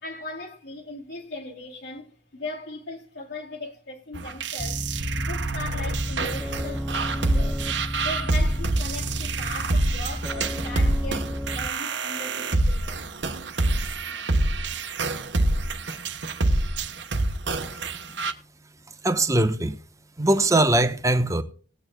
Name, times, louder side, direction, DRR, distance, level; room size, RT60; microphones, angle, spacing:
voice 1, 0.0-4.9 5.2-7.6 8.0-13.1, left 2 dB, 75° left, 2.7 m, -38 dB
sound 1, 4.1-18.3, right 2 dB, 75° right, 1.1 m, -26 dB
sound 2, 4.6-11.7, equal, ahead, 0.4 m, -32 dB
voice 2, 19.0-19.8 20.2-21.4, right 1 dB, 15° right, 1.0 m, -21 dB
19.5 x 8.9 x 2.3 m
head